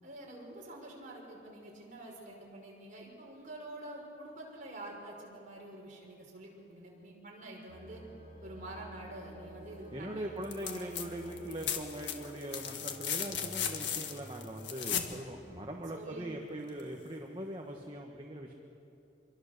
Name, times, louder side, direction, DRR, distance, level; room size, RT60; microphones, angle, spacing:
voice 1, 0.0-8.0 8.4-11.0 15.9-16.6, right 1 dB, 40° right, -2 dB, 5.7 m, -47 dB
sound 1, 7.7-15.6, right 1 dB, 40° left, 6.5 m, -52 dB
voice 2, 9.9-18.5, right 1 dB, 25° right, 0 dB, 1.5 m, -41 dB
sound 2, 10.4-11.1 11.3-15.1 16.8-16.9, left 8 dB, 70° left, 1.8 m, -36 dB
26.5 x 23.0 x 6.8 m, 2.7 s
head